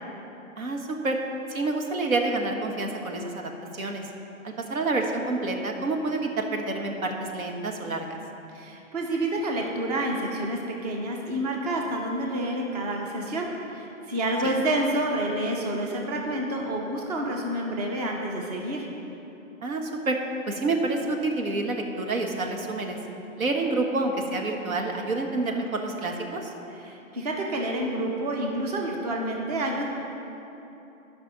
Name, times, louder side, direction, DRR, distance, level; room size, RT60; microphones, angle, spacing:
voice 1, 0.6-1.2 1.5-4.1 4.4-8.2 14.4-14.5 19.6-20.2 20.5-23.0 23.4-26.5, right 2 dB, 85° right, 3 dB, 1.4 m, -28 dB
voice 2, 8.5-18.9 26.8-29.8, right 1 dB, 30° right, 0 dB, 0.8 m, -29 dB
10.5 x 5.4 x 5.6 m, 3.0 s
hypercardioid pair, 165°, 41 cm